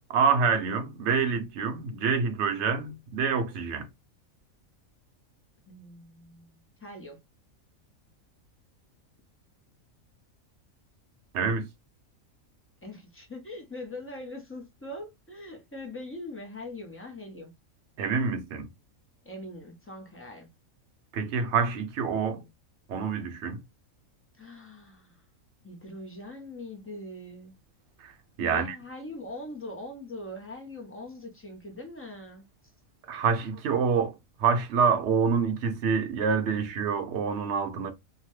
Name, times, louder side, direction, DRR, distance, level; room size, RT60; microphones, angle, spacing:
voice 1, 0.1-3.9 11.3-11.7 18.0-18.7 21.1-22.4 22.9-23.6 28.0-28.8 33.1-37.9, right 5 dB, 60° right, 0.9 m, -27 dB
voice 2, 5.6-7.2 12.8-17.5 19.2-20.5 24.4-25.2 25.6-27.5 28.4-32.4, left 1 dB, 15° left, 0.4 m, -42 dB
2.8 x 2.1 x 3.0 m
omnidirectional pair, 1.4 m